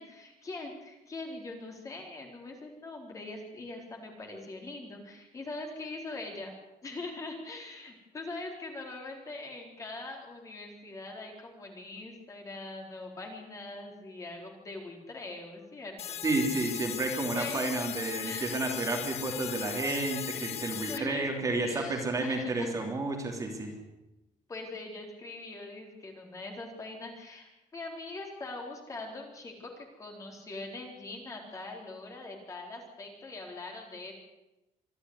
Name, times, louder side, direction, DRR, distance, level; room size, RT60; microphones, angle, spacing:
voice 1, 0.0-6.6 6.8-16.2 17.3-17.7 18.2-18.6 20.3-20.6 20.9-22.8 24.5-34.1, left 2 dB, 25° left, 2 dB, 4.1 m, -42 dB
sound 1, 16.0-21.0, left 10 dB, 50° left, 1.4 m, -38 dB
voice 2, 16.2-23.7, right 2 dB, 25° right, 2 dB, 3.2 m, -31 dB
26.5 x 11.5 x 9.7 m, 0.96 s
cardioid pair, 175°, 14 cm